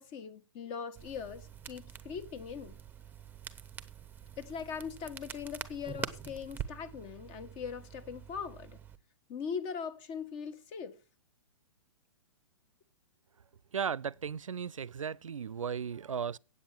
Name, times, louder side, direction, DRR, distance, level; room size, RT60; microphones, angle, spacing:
voice 1, 0.0-2.8 4.4-8.8 9.3-11.0, left 6 dB, 35° left, 1.5 m, -41 dB
Crackle, 1.0-9.0, right 7 dB, 10° right, 0.9 m, -45 dB
voice 2, 13.7-16.4, right 7 dB, 85° right, 0.5 m, -36 dB
8.5 x 8.4 x 7.3 m
figure-of-eight pair, 120°, 16 cm